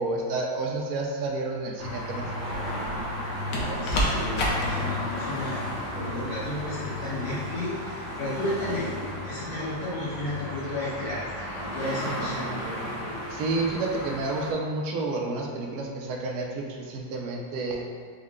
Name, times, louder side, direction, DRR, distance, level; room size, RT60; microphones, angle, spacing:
voice 1, 0.0-2.3 12.0-12.9 13.3-17.8, right 3 dB, 70° right, 0 dB, 0.9 m, -30 dB
sound 1, 1.8-14.5, left 1 dB, 45° right, 0.7 m, -34 dB
sound 2, 2.5-3.1 3.5-4.7 6.5-6.7, equal, 60° left, 1.1 m, -28 dB
voice 2, 3.5-5.6 5.9-11.2 11.6-12.7, left 1 dB, 85° left, -8 dB, 2.1 m, -33 dB
5.3 x 2.1 x 3.6 m, 2.1 s
omnidirectional pair, 2.1 m